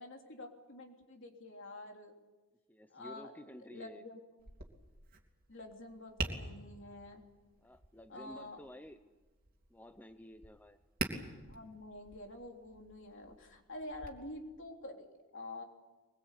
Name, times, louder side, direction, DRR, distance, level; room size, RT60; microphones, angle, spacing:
voice 1, 0.0-2.1 2.9-4.2 5.5-7.2 8.1-8.6 11.4-15.6, left 1 dB, 60° left, 2 dB, 3.5 m, -48 dB
voice 2, 2.7-4.1 7.6-9.0 9.7-10.8, equal, 10° left, 9 dB, 0.7 m, -52 dB
Tap, 4.4-14.1, right 2 dB, 45° right, 3.0 m, -46 dB
23.0 x 22.0 x 8.4 m, 1.2 s
head